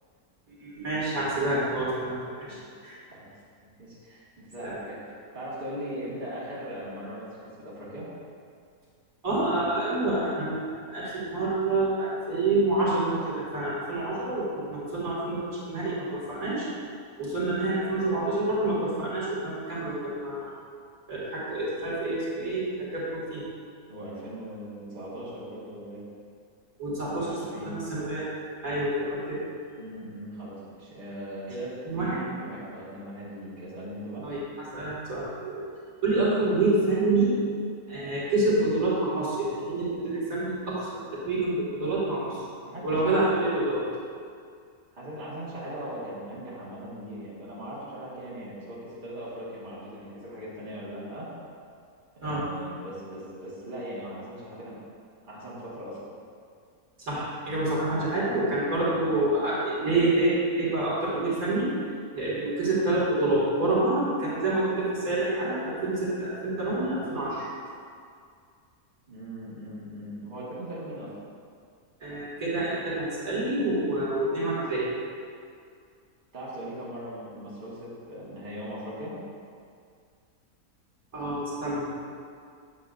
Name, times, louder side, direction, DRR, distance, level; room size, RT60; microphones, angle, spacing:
voice 1, 0.6-3.0 4.6-4.7 9.2-16.7 17.2-20.5 21.1-23.4 26.8-27.3 27.6-28.3 28.6-29.4 31.9-32.2 34.2-34.4 34.7-35.6 36.0-37.4 37.9-42.4 42.8-43.9 52.2-52.4 57.1-61.7 62.1-67.5 72.0-74.9 81.1-81.9, right 2 dB, 70° right, -8 dB, 2.5 m, -27 dB
voice 2, 2.3-2.7 3.1-3.3 3.8-8.1 23.9-26.0 27.1-27.8 29.8-34.3 42.6-42.9 43.1-43.3 44.9-51.3 52.2-54.8 55.2-56.0 69.1-71.1 76.3-79.2, right 1 dB, 35° right, -9 dB, 1.8 m, -39 dB
8.6 x 7.6 x 2.5 m, 2.2 s
omnidirectional pair, 1.6 m